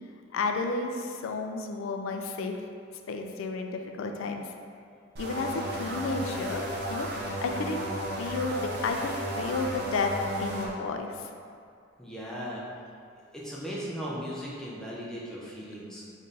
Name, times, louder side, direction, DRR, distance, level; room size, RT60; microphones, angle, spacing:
voice 1, 0.3-2.6 3.1-4.5 5.2-6.6 6.9-7.1 7.4-7.8 8.2-11.3, left 3 dB, 70° left, 4 dB, 0.3 m, -32 dB
sound 1, 5.2-10.7, equal, 50° right, 0.6 m, -34 dB
voice 2, 12.0-12.6 13.1-16.0, equal, 5° left, -6 dB, 0.5 m, -37 dB
4.2 x 2.6 x 3.2 m, 2.3 s
head